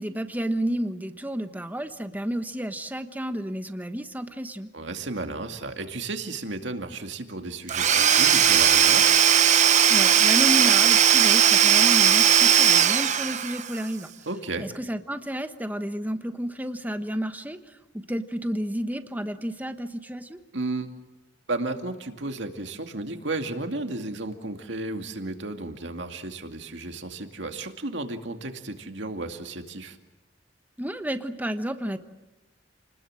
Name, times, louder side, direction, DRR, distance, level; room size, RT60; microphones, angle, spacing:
voice 1, 0.0-4.7 9.9-14.1 14.6-20.4 30.8-32.0, equal, 10° right, 8 dB, 1.2 m, -31 dB
voice 2, 4.7-9.1 14.3-14.7 20.5-20.9 21.5-30.0, right 2 dB, 70° right, 5 dB, 2.4 m, -33 dB
Domestic sounds home sounds / Tools, 7.7-13.8, right 9 dB, 40° right, 0.9 m, -18 dB
30.0 x 20.5 x 7.6 m, 1.0 s
head